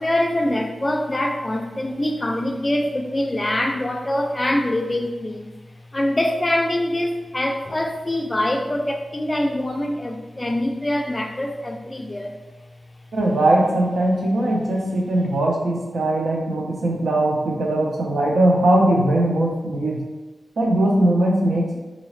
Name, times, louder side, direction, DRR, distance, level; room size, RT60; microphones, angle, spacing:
voice 1, 0.0-5.6 5.9-12.4, left 1 dB, 25° left, 4 dB, 0.4 m, -24 dB
voice 2, 13.1-20.0 20.6-21.8, right 1 dB, 80° right, -1 dB, 0.7 m, -20 dB
3.9 x 2.7 x 3.1 m, 1.2 s
wide cardioid pair, 115°, 0 cm